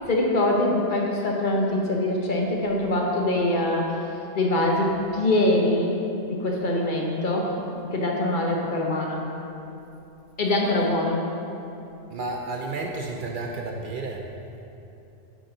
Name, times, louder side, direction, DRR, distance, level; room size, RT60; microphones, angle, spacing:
voice 1, 0.1-4.0 4.3-7.5 7.9-9.2 10.4-11.3, left 1 dB, 50° left, -1 dB, 0.9 m, -23 dB
voice 2, 12.1-14.3, right 3 dB, 55° right, 1 dB, 0.7 m, -31 dB
8.6 x 5.1 x 3.8 m, 2.9 s
omnidirectional pair, 1.1 m